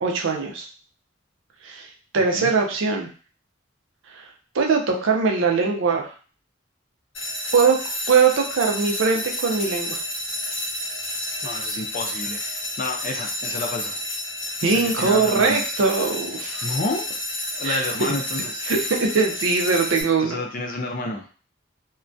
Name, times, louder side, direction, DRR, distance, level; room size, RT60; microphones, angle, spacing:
voice 1, 0.0-0.7 1.6-1.9 2.1-3.1 4.2-4.3 4.5-6.1 7.5-7.8 8.1-10.0 14.6-16.7 17.6-17.8 18.7-20.4, right 4 dB, 75° right, 2 dB, 0.5 m, -21 dB
voice 2, 2.2-2.5 11.4-14.0 14.6-15.6 16.6-17.1 17.6-18.6 20.2-21.3, left 2 dB, 45° left, 2 dB, 0.5 m, -30 dB
sound 1, 7.1-20.0, left 1 dB, 80° left, 0.9 m, -30 dB
2.2 x 2.2 x 2.6 m, 0.37 s
head